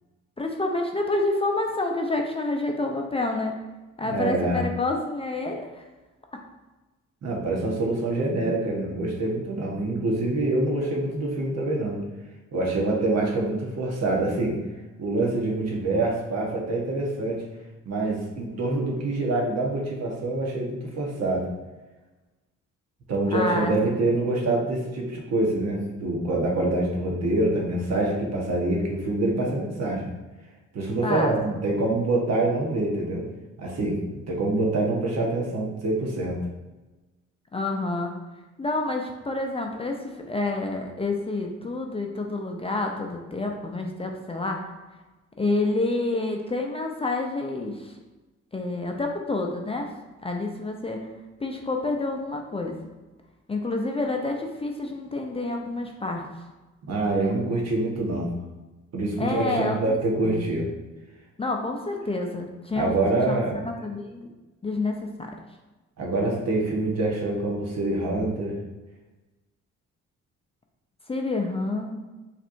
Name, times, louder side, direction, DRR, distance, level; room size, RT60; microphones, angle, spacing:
voice 1, 0.4-3.6 4.0-5.8 23.3-24.0 31.0-31.3 37.5-38.1 38.6-44.6 45.4-47.9 48.5-49.9 50.2-51.0 51.4-52.8 53.5-56.2 59.2-60.5 61.4-63.0 63.3-63.4 63.8-64.3 64.6-65.3 71.1-72.0, left 2 dB, 20° left, 2 dB, 0.6 m, -28 dB
voice 2, 4.0-4.6 7.2-12.0 12.5-14.6 15.0-17.4 17.8-21.5 23.1-30.1 30.7-33.2 33.6-36.4 56.9-58.4 58.9-60.7 62.7-63.6 66.0-68.6, right 2 dB, 60° right, -2 dB, 1.3 m, -25 dB
5.8 x 3.3 x 2.6 m, 1.1 s
cardioid pair, 90°, 30 cm